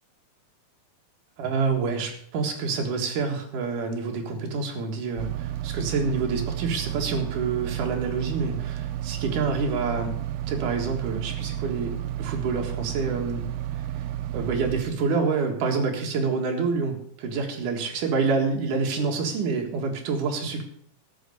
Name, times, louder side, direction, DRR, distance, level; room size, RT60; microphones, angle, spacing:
voice 1, 1.4-10.1 10.5-13.5 14.3-20.6, right 4 dB, 60° right, 2 dB, 3.1 m, -27 dB
sound 1, 5.2-14.8, right 12 dB, 90° right, 2.6 m, -32 dB
13.0 x 6.6 x 6.7 m, 0.65 s
omnidirectional pair, 4.4 m